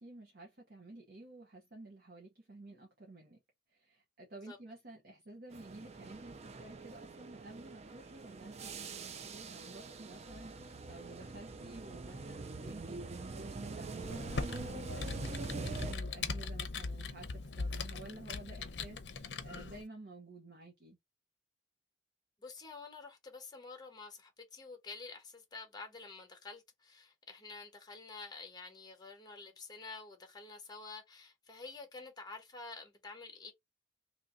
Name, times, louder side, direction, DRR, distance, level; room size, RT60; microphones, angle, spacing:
voice 1, 0.0-3.4 3.7-13.0 13.3-21.0, right 2 dB, 55° right, 0.9 m, -52 dB
sound 1, 5.5-16.0, right 3 dB, 35° right, 0.4 m, -44 dB
Computer keyboard, 14.0-19.8, left 4 dB, 70° left, 0.6 m, -40 dB
voice 2, 22.4-33.5, left 4 dB, 25° left, 1.1 m, -49 dB
3.0 x 2.7 x 3.7 m
head